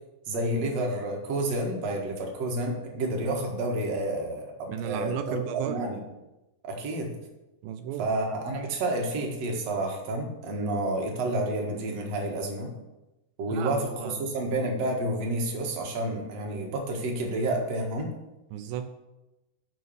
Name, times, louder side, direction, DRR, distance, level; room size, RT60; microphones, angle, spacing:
voice 1, 0.3-2.1 2.4-4.4 4.8-6.0 6.7-7.1 8.0-12.7 13.4-13.8 14.2-18.1, right 1 dB, 50° right, 1 dB, 2.1 m, -29 dB
voice 2, 4.7-5.9 7.6-8.1 13.5-14.3 18.5-18.9, right 9 dB, 90° right, 8 dB, 2.1 m, -34 dB
9.3 x 5.6 x 7.0 m, 0.99 s
omnidirectional pair, 4.8 m